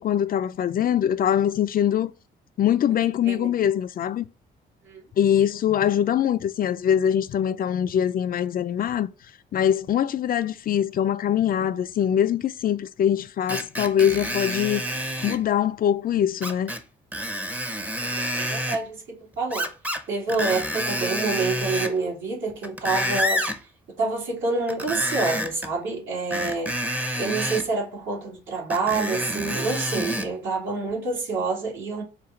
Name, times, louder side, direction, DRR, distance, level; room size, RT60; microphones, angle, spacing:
voice 1, 0.0-2.1 2.6-4.3 5.2-9.1 9.5-14.8 15.2-16.7, left 9 dB, 45° left, 0.4 m, -23 dB
Screech, 13.5-15.4 16.4-16.8 17.1-18.8 19.5-20.0 20.3-22.0 22.5-23.6 24.7-25.7 26.3-27.7 28.7-30.3 30.9-31.0, equal, 5° right, 0.6 m, -28 dB
voice 2, 18.0-19.7 20.1-23.4 24.0-26.7 27.2-32.0, right 3 dB, 75° right, 2.2 m, -27 dB
5.0 x 2.3 x 4.3 m
cardioid pair, 90°, 20 cm